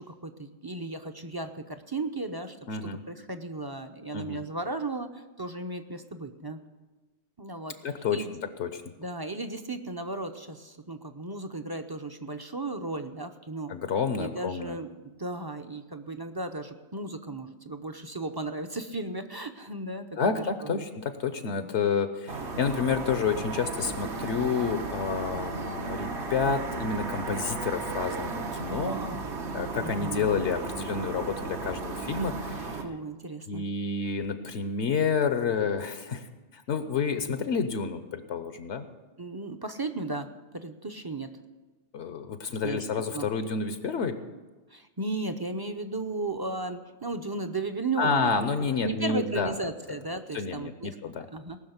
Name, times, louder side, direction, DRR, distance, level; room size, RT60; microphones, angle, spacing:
voice 1, 0.0-2.6 2.8-6.6 7.4-7.8 8.1-8.3 9.0-13.8 14.2-20.9 21.6-21.7 26.4-26.8 28.7-29.2 29.8-30.3 32.8-33.6 37.2-37.3 39.2-41.4 42.6-42.8 43.1-43.3 44.7-48.5 48.8-51.0 51.3-51.6, right 2 dB, 25° right, 7 dB, 0.6 m, -35 dB
voice 2, 2.7-3.0 4.1-4.4 7.8-8.2 8.6-8.8 13.7-14.8 20.1-29.0 29.5-32.8 33.5-36.3 36.5-38.9 41.9-44.2 48.0-49.5 50.3-51.3, left 5 dB, 75° left, 9 dB, 1.1 m, -29 dB
sound 1, 22.3-32.8, right 3 dB, 70° right, 1.5 m, -35 dB
19.0 x 6.3 x 8.0 m, 1.2 s
omnidirectional pair, 1.2 m